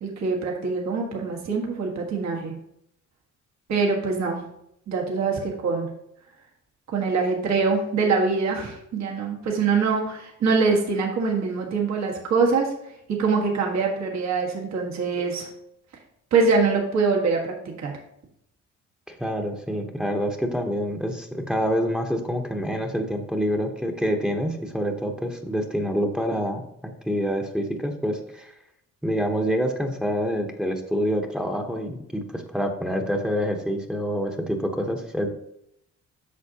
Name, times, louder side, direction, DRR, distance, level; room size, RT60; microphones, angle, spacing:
voice 1, 0.0-2.5 3.7-4.4 4.9-5.9 6.9-12.7 13.1-15.5 16.3-17.9, right 4 dB, 65° right, 0 dB, 1.6 m, -24 dB
voice 2, 19.1-28.5 29.0-35.3, equal, ahead, 4 dB, 1.0 m, -27 dB
8.3 x 6.1 x 2.9 m, 0.77 s
cardioid pair, 90°, 30 cm